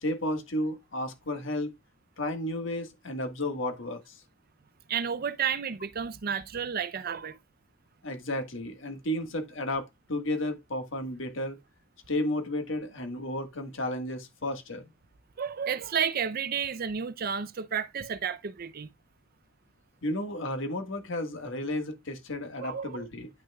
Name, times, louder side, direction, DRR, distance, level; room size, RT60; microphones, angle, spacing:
voice 1, 0.0-1.7 2.2-4.2 8.0-11.6 12.1-14.9 20.0-23.3, left 1 dB, 65° left, 1.6 m, -33 dB
voice 2, 4.9-7.4 15.4-18.9 22.6-23.1, right 7 dB, 45° right, 0.5 m, -31 dB
10.5 x 6.2 x 2.3 m
head